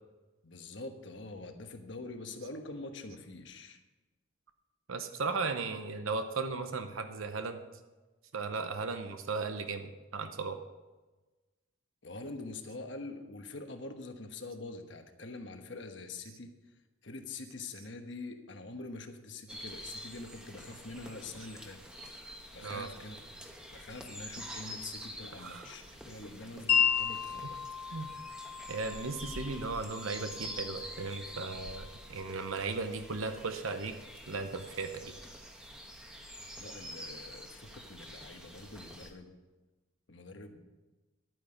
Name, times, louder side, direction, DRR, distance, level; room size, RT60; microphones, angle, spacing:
voice 1, 0.4-3.8 12.0-16.5 17.0-21.8 22.5-27.6 36.6-39.4 40.1-40.6, left 2 dB, 60° left, 6 dB, 1.2 m, -45 dB
voice 2, 4.9-7.6 8.3-10.6 22.6-22.9 25.4-25.7 27.9-28.1 28.7-34.0 34.3-35.1, right 4 dB, 80° right, 8 dB, 0.8 m, -36 dB
sound 1, 19.5-39.1, equal, 5° right, 1.1 m, -47 dB
Wind chime, 26.7-32.8, left 7 dB, 25° left, 1.6 m, -35 dB
11.5 x 9.2 x 5.2 m, 1.2 s
head